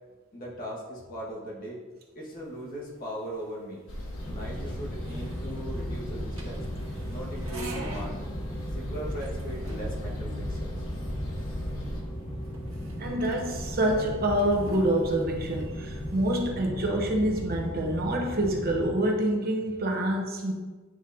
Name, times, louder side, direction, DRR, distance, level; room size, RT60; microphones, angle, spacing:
voice 1, 0.3-1.8 2.1-3.8 4.2-6.7 7.1-8.2 8.7-10.9, equal, 45° left, -4 dB, 1.6 m, -39 dB
sound 1, 2.3-16.5, right 2 dB, 80° right, 1.2 m, -47 dB
sound 2, 3.9-12.0, equal, 85° left, 1.2 m, -37 dB
sound 3, 4.2-18.9, equal, 25° left, 1.0 m, -37 dB
voice 2, 13.0-20.5, right 1 dB, 45° right, 1 dB, 0.9 m, -27 dB
9.2 x 3.9 x 2.7 m, 1.3 s
head